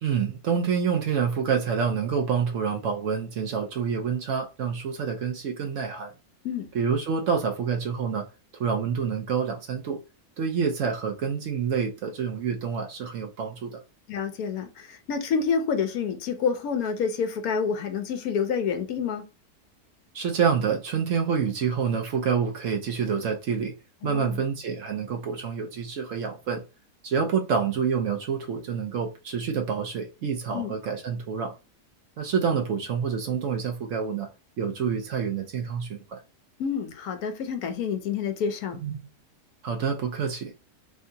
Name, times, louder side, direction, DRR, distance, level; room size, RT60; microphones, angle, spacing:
voice 1, 0.0-6.1 6.7-8.3 8.6-10.0 10.4-13.8 20.1-23.7 24.0-26.6 27.0-31.5 32.2-34.3 34.6-36.2 38.8-38.9 39.6-40.5, right 6 dB, 65° right, 0.9 m, -27 dB
voice 2, 14.1-19.2 24.0-24.4 30.5-30.7 36.6-38.8, left 6 dB, 70° left, 1.0 m, -28 dB
3.4 x 2.7 x 2.6 m
omnidirectional pair, 1.7 m